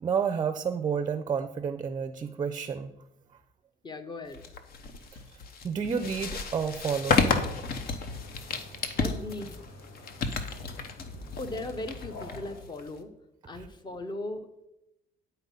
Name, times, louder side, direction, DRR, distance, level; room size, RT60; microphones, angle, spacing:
voice 1, 0.0-2.9 5.6-7.2 8.9-9.0 13.6-13.7, right 6 dB, 25° right, 10 dB, 0.5 m, -30 dB
voice 2, 3.8-4.4 9.0-9.6 11.4-13.1 13.5-14.7, left 2 dB, 25° left, 9 dB, 0.8 m, -38 dB
sound 1, 4.3-13.0, left 4 dB, 65° left, 0.9 m, -32 dB
sound 2, 6.9-12.6, left 2 dB, 80° left, 2.2 m, -48 dB
9.8 x 4.2 x 5.4 m, 0.90 s
cardioid pair, 110°, 17 cm